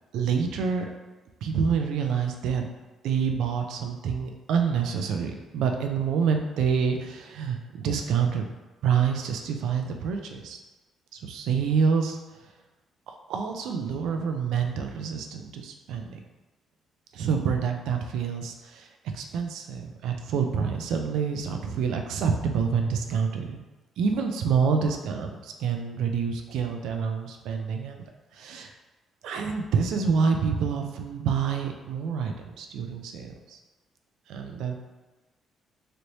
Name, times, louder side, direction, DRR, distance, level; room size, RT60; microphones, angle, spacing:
voice 1, 0.1-0.9 1.4-2.7 3.0-8.5 8.8-10.6 11.1-12.2 13.1-16.2 17.1-23.6 24.0-28.7 29.2-33.6 34.3-34.7, right 6 dB, 80° right, 4 dB, 0.4 m, -27 dB
3.1 x 3.0 x 2.7 m, 1.2 s
cardioid pair, 170°, 0 cm